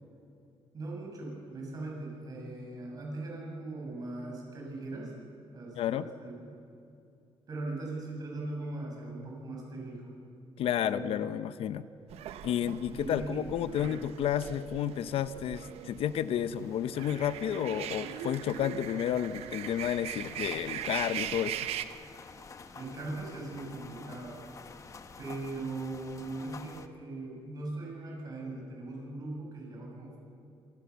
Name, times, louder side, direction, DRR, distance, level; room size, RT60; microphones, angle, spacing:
voice 1, 0.7-5.1 5.5-6.5 7.5-10.1 10.7-11.1 12.6-14.2 22.7-24.4 25.2-30.2, right 2 dB, 40° right, -1 dB, 7.0 m, -40 dB
voice 2, 5.8-6.1 10.6-11.9 12.4-21.6, left 10 dB, 70° left, 14 dB, 0.7 m, -31 dB
sound 1, 12.1-21.9, right 10 dB, 85° right, 0.9 m, -40 dB
sound 2, 15.4-26.9, left 5 dB, 30° left, 1.1 m, -51 dB
26.0 x 19.5 x 7.0 m, 2.6 s
cardioid pair, 150°, 10 cm